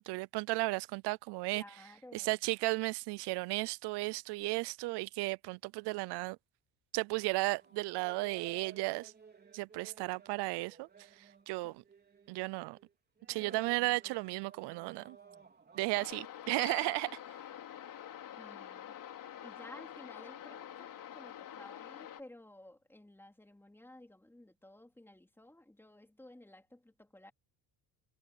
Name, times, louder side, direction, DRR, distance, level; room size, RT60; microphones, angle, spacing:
voice 1, 0.0-1.6 2.1-6.4 6.9-9.1 9.5-10.9 11.5-11.8 12.3-12.8 13.3-15.2 15.7-17.1, right 23 dB, 70° right, 0.6 m, -34 dB
voice 2, 1.5-2.3 11.6-11.7 18.4-19.0 19.4-27.3, left 1 dB, 5° left, 3.4 m, -55 dB
sound 1, 7.5-12.9 13.2-16.1, right 5 dB, 25° right, 3.6 m, -56 dB
sound 2, 15.9-22.2, left 10 dB, 50° left, 3.8 m, -47 dB
cardioid pair, 120°, 42 cm